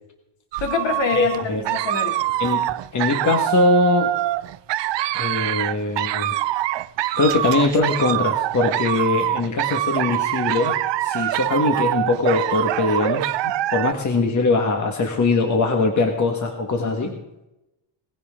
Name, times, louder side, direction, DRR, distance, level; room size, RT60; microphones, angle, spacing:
sound 1, 0.5-13.9, right 15 dB, 65° right, 0.6 m, -24 dB
voice 1, 0.6-2.2 16.8-17.2, left 5 dB, 70° left, 3 dB, 2.9 m, -26 dB
voice 2, 1.1-1.6 2.4-2.6 2.9-4.1 5.1-6.3 7.2-13.3 13.7-17.1, left 3 dB, 40° left, 4 dB, 1.7 m, -21 dB
19.0 x 15.5 x 3.7 m, 0.91 s
wide cardioid pair, 170°, 46 cm